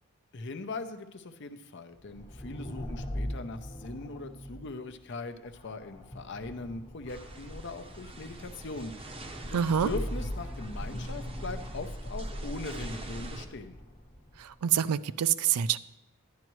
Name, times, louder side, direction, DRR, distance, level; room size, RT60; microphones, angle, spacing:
voice 1, 0.3-9.2 9.4-13.8, left 3 dB, 55° left, 8 dB, 0.6 m, -40 dB
sound 1, 2.0-14.6, equal, 30° left, 1.1 m, -41 dB
sound 2, 7.1-13.5, right 1 dB, 25° right, 0.7 m, -42 dB
voice 2, 9.5-9.9 14.4-15.8, right 9 dB, 85° right, 15 dB, 0.4 m, -26 dB
10.5 x 10.5 x 3.1 m, 0.94 s
head